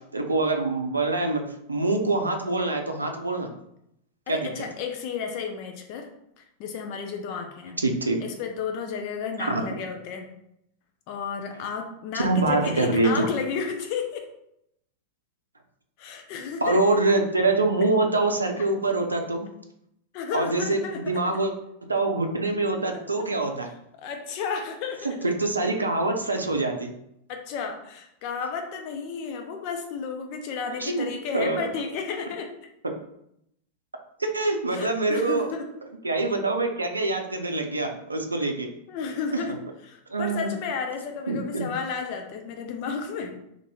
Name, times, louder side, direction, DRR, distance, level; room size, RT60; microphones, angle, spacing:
voice 1, 0.1-1.4 1.7-3.5 4.3-4.6 7.8-8.2 9.4-9.6 12.1-13.3 16.6-19.5 20.3-21.5 21.9-23.7 25.2-26.9 30.8-31.0 31.3-31.7 32.8-32.9 34.2-35.5 36.0-38.7 40.1-40.5 41.3-41.7, right 2 dB, 80° right, 4 dB, 0.5 m, -25 dB
voice 2, 4.3-6.1 6.4-7.8 8.2-10.3 11.1-14.3 16.0-16.8 20.1-21.0 22.9-23.0 24.0-25.3 27.3-32.5 34.7-35.7 38.4-38.5 38.9-39.6 39.8-43.3, left 6 dB, 45° left, 4 dB, 0.5 m, -32 dB
2.9 x 2.6 x 4.1 m, 0.77 s
figure-of-eight pair, 90°, 0 cm